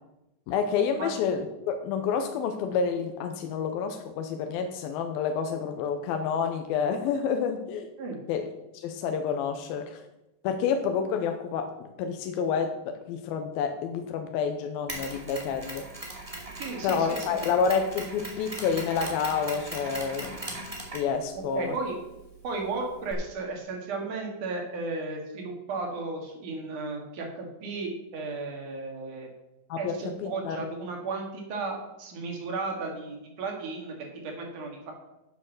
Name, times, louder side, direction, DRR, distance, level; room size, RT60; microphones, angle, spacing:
voice 1, 0.5-7.9 8.3-8.5 8.7-10.0 10.4-15.8 16.8-20.4 20.9-21.7 29.7-30.6, left 6 dB, 85° left, 6 dB, 2.6 m, -29 dB
Mechanisms, 14.9-23.1, right 1 dB, 15° right, 1.6 m, -40 dB
voice 2, 16.6-17.4 21.5-22.0 22.4-29.3 29.8-33.9 34.2-34.9, right 3 dB, 60° right, 1 dB, 3.4 m, -34 dB
9.1 x 7.6 x 6.5 m, 0.91 s
omnidirectional pair, 4.3 m